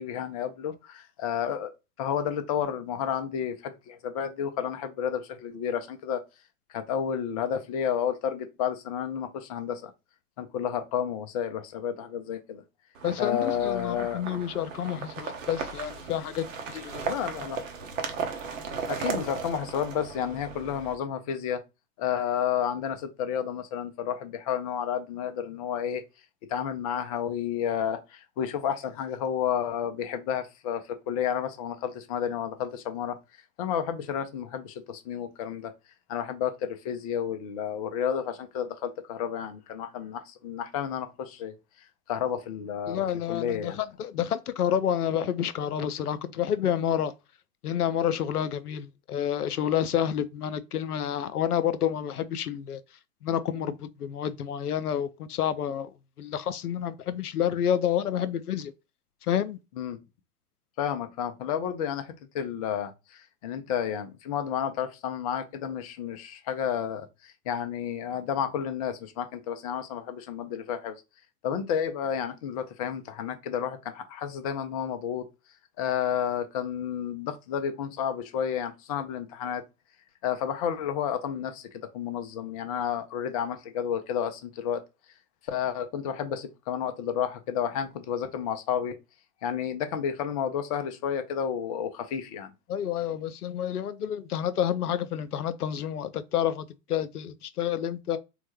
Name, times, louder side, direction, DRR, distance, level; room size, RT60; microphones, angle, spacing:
voice 1, 0.0-1.7 2.0-6.2 6.7-9.9 10.4-12.6 13.2-14.2 17.1-17.6 18.9-21.6 22.0-26.0 26.5-33.2 33.6-35.7 36.1-43.0 43.3-43.8 59.8-60.0 60.8-71.0 71.4-75.3 75.8-79.6 80.2-84.8 85.4-89.0 89.4-92.5, left 8 dB, 25° left, 0.4 m, -31 dB
sound 1, 12.9-20.9, right 5 dB, 60° right, 0.9 m, -36 dB
voice 2, 13.0-17.1 42.9-47.1 47.6-52.8 53.2-58.7 59.2-59.6 92.7-98.2, left 9 dB, 80° left, 0.5 m, -29 dB
3.7 x 2.1 x 3.0 m
figure-of-eight pair, 105°, 44 cm